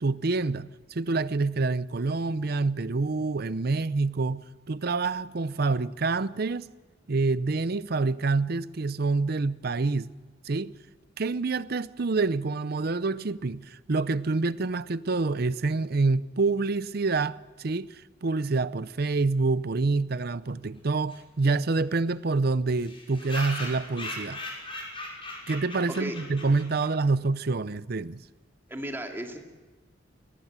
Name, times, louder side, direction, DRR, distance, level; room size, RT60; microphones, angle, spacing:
voice 1, 0.0-6.7 7.1-10.1 10.4-10.7 11.2-24.4 25.5-28.2, right 3 dB, 55° right, 0.6 m, -27 dB
sound 1, 21.1-21.2 21.4-21.5 21.8-21.9 22.1-22.2 22.8-27.0, left 2 dB, 30° left, 5.8 m, -39 dB
voice 2, 28.7-29.4, right 1 dB, 10° right, 2.4 m, -34 dB
23.5 x 17.5 x 7.4 m
head